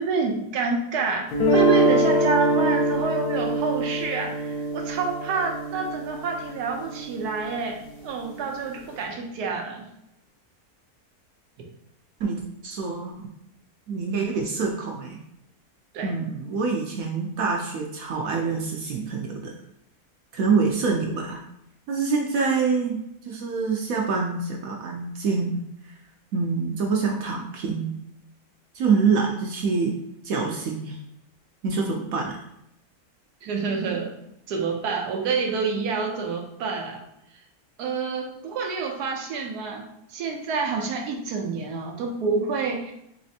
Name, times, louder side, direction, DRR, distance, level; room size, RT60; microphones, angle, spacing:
voice 1, 0.0-9.9 15.9-16.1 33.4-34.1 34.5-37.0 37.8-39.8 40.1-42.9, right 4 dB, 85° right, 2 dB, 1.2 m, -28 dB
sound 1, 1.3-7.4, right 1 dB, 80° left, 1.3 m, -24 dB
voice 2, 12.2-13.3 13.9-15.2 16.0-19.5 20.3-21.4 21.9-23.0 23.2-25.6 26.3-27.9 28.7-29.9 30.2-31.0 31.6-32.4, right 4 dB, 70° right, 0 dB, 0.9 m, -26 dB
4.2 x 3.1 x 2.7 m, 0.80 s
omnidirectional pair, 1.6 m